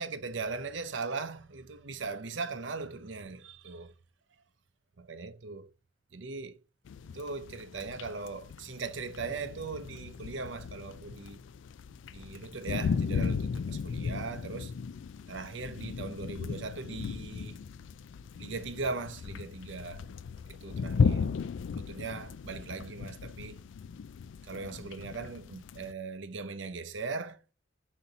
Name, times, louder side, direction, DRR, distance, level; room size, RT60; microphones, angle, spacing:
voice 1, 0.0-3.9 5.0-5.7 6.1-6.6 7.1-11.4 12.1-14.7 15.3-17.6 18.4-20.1 20.5-21.3 21.7-23.6 24.4-27.4, right 4 dB, 80° right, 0.7 m, -39 dB
sound 1, 6.9-25.9, left 5 dB, 80° left, 0.4 m, -36 dB
5.8 x 4.1 x 3.9 m
head